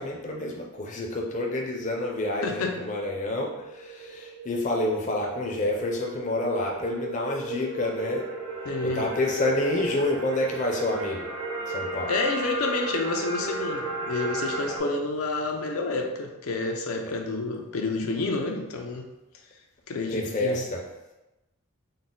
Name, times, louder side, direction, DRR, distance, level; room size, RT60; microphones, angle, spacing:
voice 1, 0.0-8.2 8.8-11.3 11.7-12.1 20.1-20.9, left 1 dB, 35° left, -1 dB, 0.5 m, -28 dB
voice 2, 2.4-2.8 8.7-9.1 12.1-19.0 19.9-20.6, left 3 dB, 85° left, 3 dB, 0.5 m, -29 dB
sound 1, 3.5-14.8, right 2 dB, 85° right, 0.7 m, -35 dB
3.9 x 2.1 x 3.7 m, 0.99 s
head